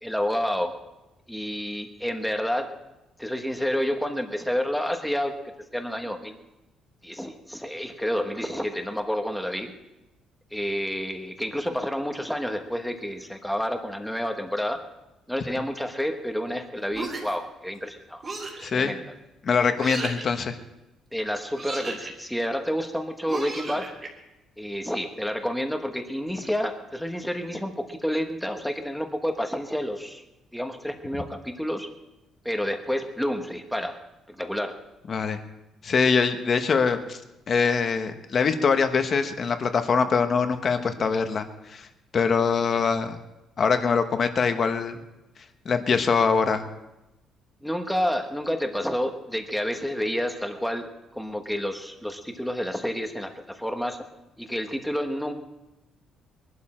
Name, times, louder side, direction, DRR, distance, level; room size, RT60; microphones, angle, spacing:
voice 1, 0.0-0.7 1.3-2.7 3.2-5.3 5.7-6.4 7.0-9.7 10.5-14.8 15.3-18.2 18.7-19.0 21.1-23.9 24.6-30.2 30.5-31.9 32.4-34.0 34.3-34.8 47.6-50.9 51.1-54.0 54.4-55.3, equal, ahead, 5 dB, 1.1 m, -29 dB
sound 1, 16.9-17.5 18.2-18.7 19.8-20.3 21.5-22.1 23.3-24.1, right 3 dB, 25° right, 2.6 m, -34 dB
voice 2, 18.6-18.9 19.4-20.5 35.1-35.4 35.8-37.2 37.5-41.9 42.1-43.1 43.6-45.0 45.6-46.6, left 5 dB, 30° left, 8 dB, 1.0 m, -23 dB
22.0 x 12.0 x 4.3 m, 0.96 s
cardioid pair, 175°, 0 cm